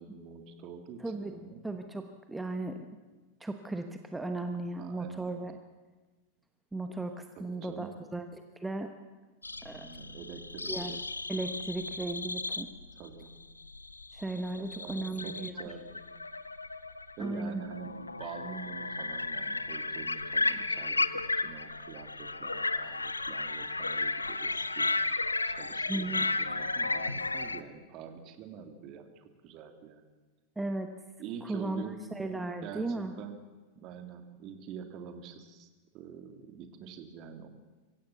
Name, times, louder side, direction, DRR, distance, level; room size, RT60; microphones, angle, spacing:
voice 1, 0.0-1.6 4.7-5.3 7.4-7.9 9.7-11.0 13.0-13.3 14.6-15.9 17.2-17.9 18.2-21.0 21.4-24.9 25.5-30.0 31.2-32.0 32.6-33.4 33.8-35.7 35.9-37.5, right 7 dB, 40° right, 6 dB, 2.4 m, -46 dB
voice 2, 1.0-1.4 1.6-2.9 3.4-5.6 6.7-8.9 9.6-9.9 10.7-11.0 11.3-12.7 14.1-15.7 17.2-17.6 25.9-26.3 30.6-30.9 31.4-31.8 32.1-33.1, right 2 dB, 10° right, 6 dB, 1.1 m, -36 dB
sound 1, 9.4-27.6, left 3 dB, 80° left, 0.7 m, -34 dB
24.0 x 16.0 x 7.0 m, 1.3 s
figure-of-eight pair, 90°, 0 cm